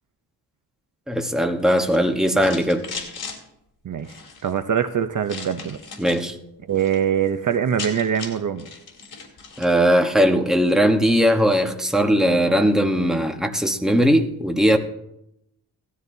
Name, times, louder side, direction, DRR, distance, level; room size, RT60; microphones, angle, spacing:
voice 1, 1.1-2.9 6.0-6.4 9.6-14.8, equal, ahead, 1.1 m, -19 dB
sound 1, 1.6-3.4 4.0-4.5 5.3-6.3 6.6-7.0 7.3-7.4 7.5-9.8, left 4 dB, 65° left, 3.2 m, -37 dB
voice 2, 4.4-5.8 6.7-8.7, right 8 dB, 50° right, 0.7 m, -23 dB
17.5 x 13.0 x 2.7 m
wide cardioid pair, 110°, 41 cm